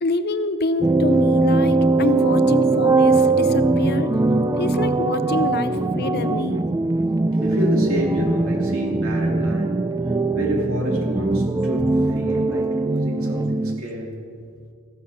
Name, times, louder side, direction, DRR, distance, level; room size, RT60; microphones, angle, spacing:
voice 1, 0.0-4.1 4.6-6.7, left 2 dB, 50° left, 11 dB, 0.7 m, -26 dB
sound 1, 0.8-13.8, right 2 dB, 15° right, 0.3 m, -20 dB
voice 2, 7.4-9.8 10.3-14.2, equal, 70° right, 0 dB, 2.7 m, -29 dB
14.5 x 10.0 x 6.3 m, 2.3 s
head